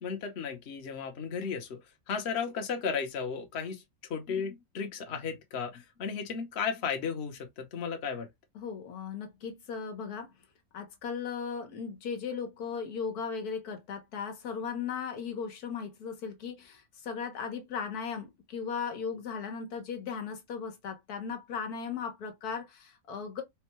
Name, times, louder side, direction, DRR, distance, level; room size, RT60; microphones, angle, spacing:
voice 1, 0.0-1.8 2.1-8.3, left 6 dB, 50° left, 1.1 m, -34 dB
voice 2, 8.5-10.3 10.7-23.4, left 6 dB, 85° left, 1.5 m, -37 dB
4.4 x 2.2 x 3.0 m
omnidirectional pair, 1.6 m